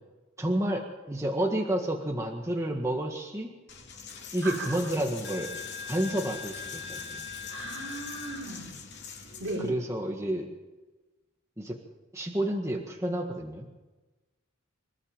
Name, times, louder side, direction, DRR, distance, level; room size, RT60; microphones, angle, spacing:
voice 1, 0.4-3.5 4.3-5.5 5.9-7.3 9.6-10.5 11.6-11.8 12.1-13.7, right 1 dB, 15° right, 1 dB, 1.8 m, -30 dB
Coin (dropping), 3.7-9.7, left 6 dB, 55° left, 3.5 m, -41 dB
voice 2, 7.5-8.8 9.4-9.7, right 2 dB, 65° right, -1 dB, 5.7 m, -36 dB
26.5 x 14.0 x 7.4 m, 1.2 s
head